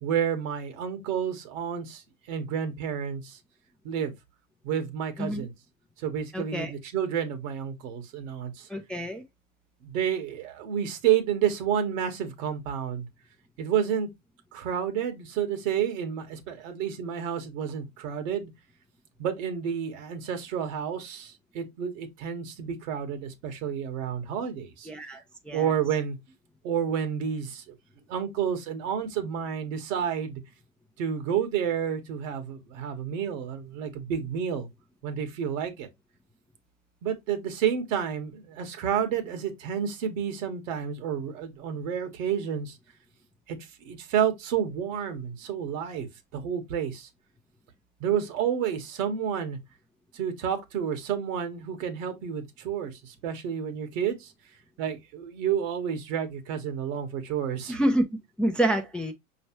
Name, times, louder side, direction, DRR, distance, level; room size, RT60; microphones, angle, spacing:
voice 1, 0.0-3.4 3.8-4.1 4.6-5.5 6.0-8.7 9.8-13.1 13.6-14.1 14.5-18.5 19.2-24.9 25.5-26.2 26.6-27.7 28.1-30.4 31.0-34.7 35.0-35.9 37.0-42.8 43.5-47.1 48.0-49.6 50.1-54.3 54.8-57.8, right 8 dB, 70° right, 1.5 m, -30 dB
voice 2, 6.3-6.7 8.7-9.2 24.9-25.2 25.5-25.6 57.7-58.0 58.4-59.1, right 1 dB, ahead, 0.5 m, -27 dB
5.2 x 3.2 x 2.9 m
hypercardioid pair, 105°, 40 cm